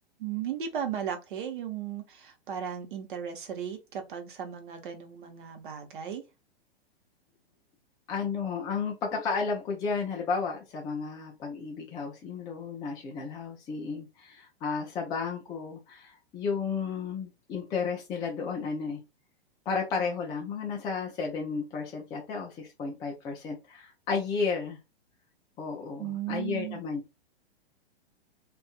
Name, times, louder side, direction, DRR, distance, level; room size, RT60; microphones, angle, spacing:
voice 1, 0.2-6.2 26.0-26.8, right 9 dB, 55° right, 0.9 m, -36 dB
voice 2, 8.1-19.0 19.7-24.8 25.6-27.0, left 5 dB, 15° left, 0.4 m, -33 dB
2.6 x 2.4 x 2.4 m
figure-of-eight pair, 105°, 31 cm